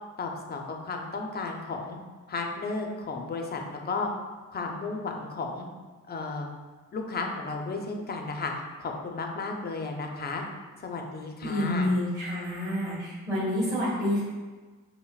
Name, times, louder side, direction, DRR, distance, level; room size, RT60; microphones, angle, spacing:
voice 1, 0.2-2.0 2.3-4.1 4.5-5.7 6.1-6.5 6.9-8.5 8.8-10.4 10.8-11.9, left 3 dB, 35° left, 2 dB, 0.5 m, -33 dB
voice 2, 11.4-14.2, left 1 dB, 15° right, -12 dB, 1.5 m, -28 dB
5.3 x 2.1 x 2.3 m, 1.4 s
cardioid pair, 90°, 30 cm